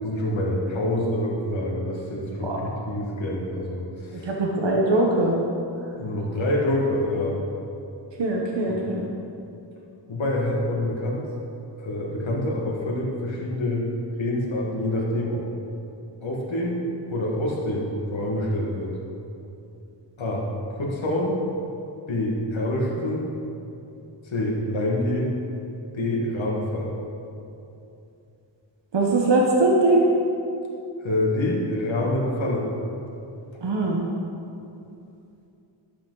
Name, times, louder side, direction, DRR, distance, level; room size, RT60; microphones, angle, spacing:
voice 1, 0.0-4.3 6.0-7.4 8.7-8.8 10.1-11.3 11.8-13.8 14.2-15.5 16.2-16.8 17.1-18.9 20.2-21.4 22.1-23.3 24.2-25.4 25.9-26.9 31.0-32.7, left 1 dB, 80° left, -3 dB, 1.8 m, -26 dB
voice 2, 4.1-5.3 8.2-9.0 28.9-30.0 33.6-34.0, right 2 dB, 65° right, -1 dB, 1.2 m, -21 dB
11.5 x 8.6 x 4.0 m, 2.7 s
wide cardioid pair, 90°, 46 cm